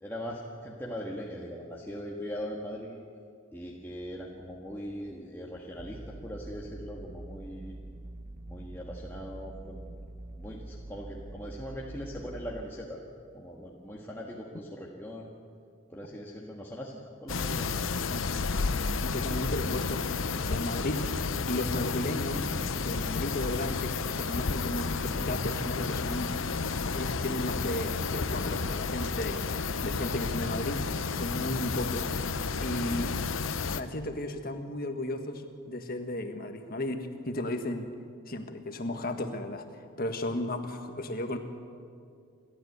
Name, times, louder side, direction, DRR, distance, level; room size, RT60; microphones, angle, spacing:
voice 1, 0.0-3.0 3.5-7.7 8.4-9.9 10.3-13.0 13.3-15.3 15.9-17.9, equal, 10° left, -3 dB, 1.6 m, -40 dB
sound 1, 5.8-12.6, right 1 dB, 40° right, 0.9 m, -44 dB
sound 2, 17.3-33.8, left 4 dB, 70° left, 0.8 m, -31 dB
voice 2, 19.0-20.0 20.4-21.1 21.5-22.5 22.7-26.4 26.9-32.0 32.6-33.1 33.7-37.9 38.3-39.6 40.0-41.4, left 1 dB, 45° left, 6 dB, 1.6 m, -34 dB
29.0 x 13.0 x 8.2 m, 2.4 s
head